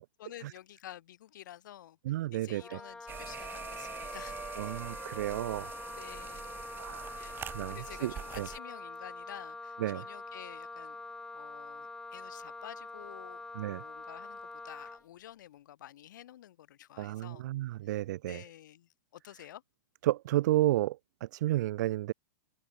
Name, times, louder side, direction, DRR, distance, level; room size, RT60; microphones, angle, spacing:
voice 1, 0.2-4.5 5.9-6.6 7.2-7.4 7.7-11.0 11.3-13.5 13.8-17.5 17.8-18.0 18.2-19.6, left 12 dB, 70° left, 4.0 m, -50 dB
voice 2, 2.1-2.8 4.6-5.7 6.8-8.5 9.8-10.0 13.6-13.8 17.0-18.4 20.0-22.1, right 15 dB, 60° right, 1.8 m, -32 dB
Wind instrument woodwind instrument, 2.6-15.0, left 3 dB, 5° left, 6.8 m, -44 dB
sound 1, 3.1-8.6, right 8 dB, 20° right, 6.2 m, -45 dB
open air
hypercardioid pair, 145°, 11 cm